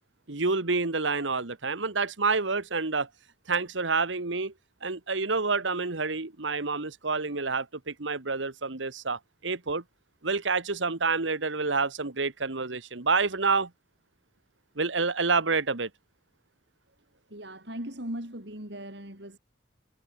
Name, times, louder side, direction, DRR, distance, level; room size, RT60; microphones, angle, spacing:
voice 1, 0.3-3.1 3.5-4.5 4.8-9.8 10.2-13.7 14.8-15.9, right 4 dB, 80° right, 1.6 m, -28 dB
voice 2, 17.3-19.4, right 1 dB, 65° right, 6.8 m, -38 dB
head